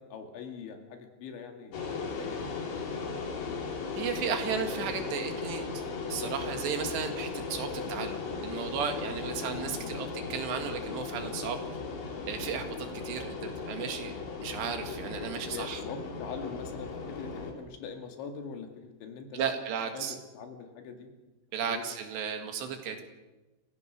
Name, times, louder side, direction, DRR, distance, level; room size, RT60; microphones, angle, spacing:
voice 1, 0.0-1.8 2.2-2.9 9.6-10.0 15.5-19.4 19.9-21.1 21.7-21.8 22.9-23.0, left 5 dB, 85° left, 4 dB, 4.6 m, -43 dB
sound 1, 1.7-17.5, left 4 dB, 55° left, 4.0 m, -37 dB
voice 2, 4.0-5.8 6.1-11.6 12.3-12.8 13.1-14.1 14.4-15.8 19.3-20.2 21.5-23.0, right 7 dB, 75° right, 6 dB, 4.0 m, -34 dB
28.0 x 16.5 x 6.4 m, 1.1 s
omnidirectional pair, 5.2 m